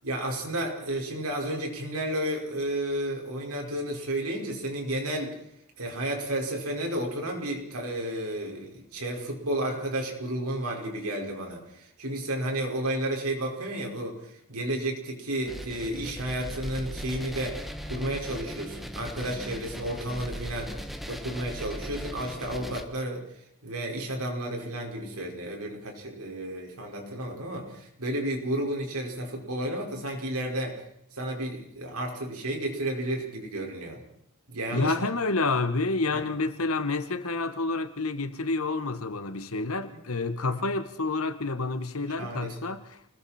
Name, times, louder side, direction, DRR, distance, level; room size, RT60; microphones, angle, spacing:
voice 1, 0.0-5.4 5.8-20.8 21.1-23.2 23.6-30.8 31.1-34.0 34.5-35.1 36.1-36.2 39.9-40.0 42.2-42.6, right 1 dB, 85° right, 5.2 m, -32 dB
sound 1, 15.5-22.8, equal, ahead, 1.3 m, -38 dB
voice 2, 34.7-43.0, left 3 dB, 75° left, 1.5 m, -29 dB
29.0 x 20.5 x 4.4 m
head